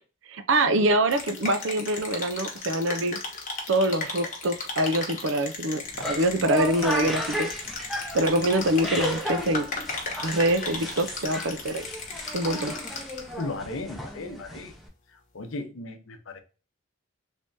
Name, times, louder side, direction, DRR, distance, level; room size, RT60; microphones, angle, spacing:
voice 1, 0.3-3.2 3.7-5.8 6.1-7.5 8.1-9.7 10.2-11.8 12.3-12.7, right 1 dB, 65° right, 0.5 m, -25 dB
sound 1, 1.1-13.4, left 3 dB, 40° left, 1.0 m, -36 dB
sound 2, 5.8-14.9, left 1 dB, ahead, 0.6 m, -34 dB
voice 2, 13.4-14.7 15.3-16.4, left 2 dB, 75° left, 0.7 m, -36 dB
3.3 x 3.3 x 2.6 m
head